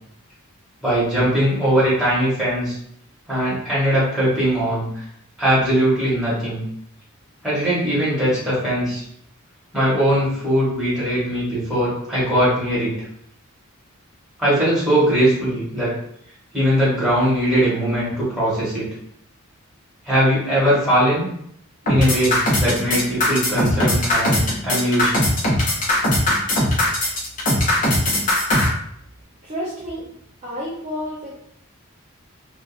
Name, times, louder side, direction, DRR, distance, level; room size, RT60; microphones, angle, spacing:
voice 1, 0.8-2.8 3.3-5.0 5.4-6.6 7.4-9.0 9.7-12.9 14.4-15.9 16.5-18.8 20.0-21.3 21.8-25.1, equal, ahead, -10 dB, 1.4 m, -20 dB
sound 1, 21.9-28.7, left 1 dB, 35° left, 0.7 m, -19 dB
voice 2, 29.4-30.1 30.4-31.4, equal, 30° right, -7 dB, 0.5 m, -30 dB
2.7 x 2.4 x 2.3 m, 0.70 s
head